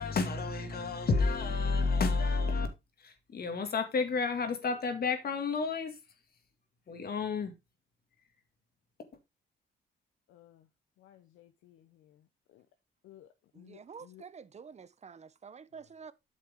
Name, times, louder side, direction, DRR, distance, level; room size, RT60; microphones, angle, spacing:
voice 1, 0.0-2.7 3.0-6.0 6.9-7.5, left 4 dB, 50° left, 2.1 m, -30 dB
voice 2, 10.3-10.7 11.0-12.7 13.0-14.2, left 13 dB, 85° left, 0.8 m, -58 dB
voice 3, 13.5-16.1, right 6 dB, 35° right, 0.8 m, -49 dB
8.7 x 6.5 x 3.6 m
cardioid pair, 90°, 20 cm